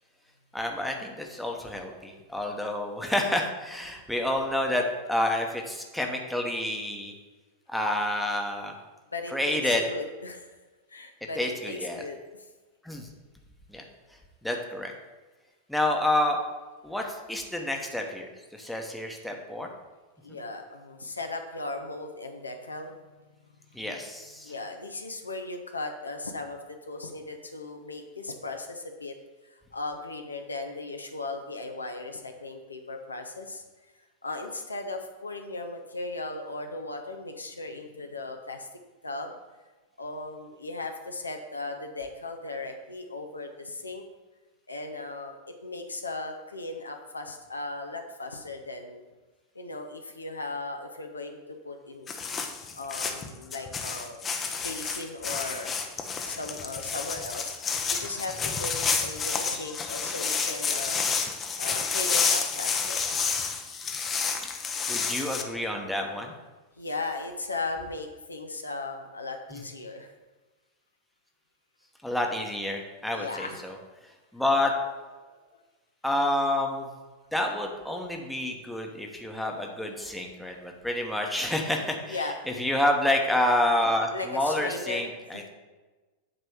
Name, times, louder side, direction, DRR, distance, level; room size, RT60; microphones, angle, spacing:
voice 1, 0.5-7.1 7.7-8.7 9.3-9.8 11.4-12.0 12.8-13.1 13.7-13.8 14.4-14.9 15.7-16.4 16.8-19.7 23.7-24.5 64.4-64.6 64.9-66.3 69.5-69.6 72.0-73.7 74.3-74.7 76.0-76.9 77.3-85.5, left 1 dB, ahead, 1 dB, 1.0 m, -29 dB
voice 2, 9.1-10.5 10.9-12.2 20.2-22.9 23.7-23.8 24.4-26.6 26.9-29.1 29.4-33.6 34.2-38.7 39.0-39.3 40.0-44.0 44.7-49.0 49.5-52.1 52.7-54.2 54.6-55.7 56.2-61.0 61.6-63.0 66.8-70.1 73.1-73.7 75.3-75.4 80.5-80.6 82.0-82.4 84.1-85.5, left 2 dB, 80° left, 4 dB, 0.7 m, -37 dB
sound 1, 52.1-65.4, left 5 dB, 25° left, 0.7 m, -30 dB
8.6 x 3.3 x 6.2 m, 1.2 s
figure-of-eight pair, 90°, 0 cm